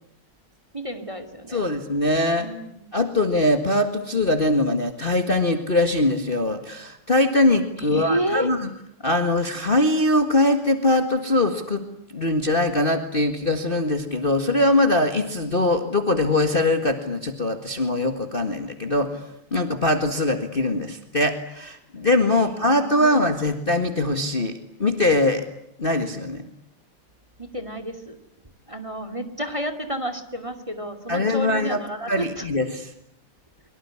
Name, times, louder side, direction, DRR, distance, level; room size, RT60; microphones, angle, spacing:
voice 1, 0.7-1.6 2.4-2.9 7.8-8.5 22.4-23.2 27.4-28.2 28.7-32.5, right 1 dB, 15° right, 10 dB, 2.4 m, -31 dB
voice 2, 1.5-2.5 2.9-8.7 9.0-11.8 12.1-19.2 19.5-25.5 25.8-26.4 31.1-31.8 32.1-32.8, left 2 dB, 25° left, 7 dB, 1.9 m, -22 dB
24.0 x 23.5 x 9.8 m, 0.74 s
omnidirectional pair, 2.4 m